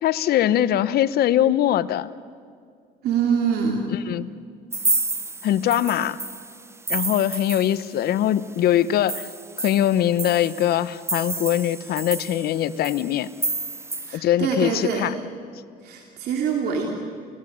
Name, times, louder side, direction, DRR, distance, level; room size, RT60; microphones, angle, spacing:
voice 1, 0.0-2.1 3.9-4.3 5.4-6.2 6.9-9.3 9.6-13.3 14.1-15.1, left 11 dB, 65° left, 15 dB, 0.9 m, -22 dB
voice 2, 3.0-3.8 14.0-15.1 15.8-16.9, right 6 dB, 70° right, 1 dB, 2.8 m, -24 dB
sound 1, 4.7-8.2 8.5-8.6 8.9-14.2, right 3 dB, 15° right, 0.9 m, -30 dB
29.5 x 16.5 x 8.8 m, 2.2 s
cardioid pair, 110°, 17 cm